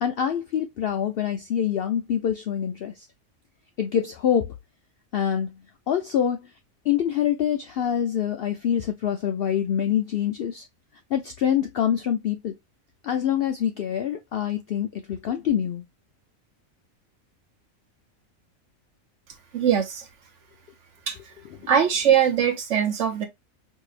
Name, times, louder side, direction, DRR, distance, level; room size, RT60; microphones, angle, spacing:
voice 1, 0.0-3.1 3.8-4.5 5.1-5.6 5.9-6.5 6.9-10.6 11.1-12.5 13.0-15.8, left 9 dB, 70° left, 0.5 m, -25 dB
voice 2, 19.5-20.1 21.1-21.3 21.7-23.3, right 8 dB, 65° right, 1.1 m, -22 dB
4.7 x 2.7 x 2.4 m
omnidirectional pair, 1.5 m